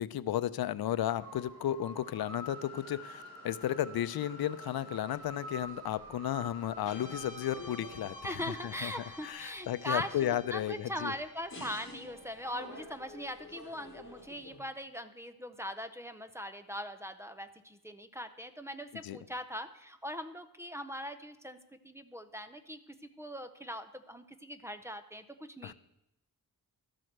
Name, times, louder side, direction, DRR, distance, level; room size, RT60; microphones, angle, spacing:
voice 1, 0.0-8.9 9.2-11.1 19.0-19.2 25.6-25.7, left 11 dB, 85° left, 16 dB, 0.5 m, -34 dB
sound 1, 1.0-9.3, equal, 40° right, 3.8 m, -47 dB
sound 2, 5.1-6.1 6.5-7.3 7.5-9.1 9.6-11.1 11.5-14.6, left 2 dB, 35° left, 3.4 m, -50 dB
Guitar, 6.8-15.3, left 3 dB, 60° left, 1.1 m, -55 dB
voice 2, 8.2-21.6 21.8-25.7, equal, 10° right, 10 dB, 0.6 m, -41 dB
12.0 x 7.7 x 6.6 m, 0.85 s
wide cardioid pair, 155°, 36 cm